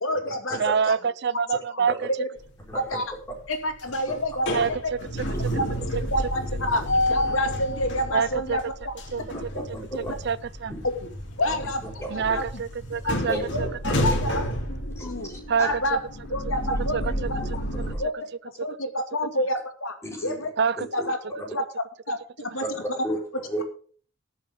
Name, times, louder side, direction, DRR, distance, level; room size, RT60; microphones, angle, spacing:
voice 1, 0.0-0.6 0.9-1.0 1.7-1.8 2.2-2.3 2.7-3.0 3.5-4.8 5.6-5.7 6.0-6.8 7.1-8.9 11.0-11.1 11.4-12.4 13.0-13.2 13.8-14.3 14.7-15.3 15.6-16.0 16.3-17.0 17.3-17.4 18.0-18.1 18.6-20.0 20.2-20.5 20.9-21.2 21.5-21.6 22.1-22.2 22.5-22.6, left 1 dB, 85° left, 2.5 m, -28 dB
voice 2, 0.6-1.9 4.5-5.0 8.1-8.6 9.1-9.2 9.7-10.7 12.1-14.0 14.2-14.3 15.5-15.8 16.9-17.0 20.6-20.9, right 6 dB, 55° right, 0.5 m, -26 dB
sound 1, 2.4-2.9 3.3-17.9, equal, 60° left, 3.1 m, -30 dB
voice 3, 2.7-3.0 4.1-4.2 5.3-5.6 9.7-10.1 10.7-10.8 11.4-11.5 12.0-12.4 13.3-13.4 14.0-14.1 15.0-15.7 17.4-17.5 17.8-18.0 20.0-20.4 21.0-21.1 22.7-23.6, equal, 15° left, 4.6 m, -33 dB
19.5 x 7.1 x 3.8 m
head